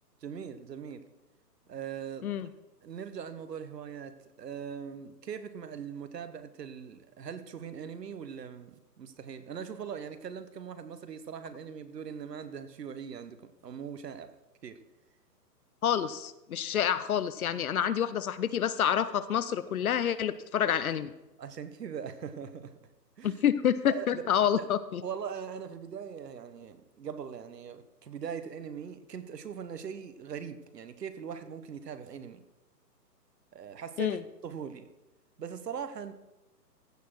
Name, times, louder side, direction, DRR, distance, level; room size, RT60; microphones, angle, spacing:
voice 1, 0.2-1.0 1.7-2.3 2.8-14.4 14.6-14.8 21.4-22.7 23.2-23.4 23.9-24.3 24.5-24.6 25.0-32.4 33.5-34.9 35.4-36.1, right 7 dB, 75° right, 11 dB, 1.2 m, -41 dB
voice 2, 15.8-21.1 23.2-25.0 34.0-34.2, left 9 dB, 60° left, 15 dB, 0.7 m, -28 dB
15.5 x 6.4 x 4.7 m, 0.99 s
hypercardioid pair, 150°, 50 cm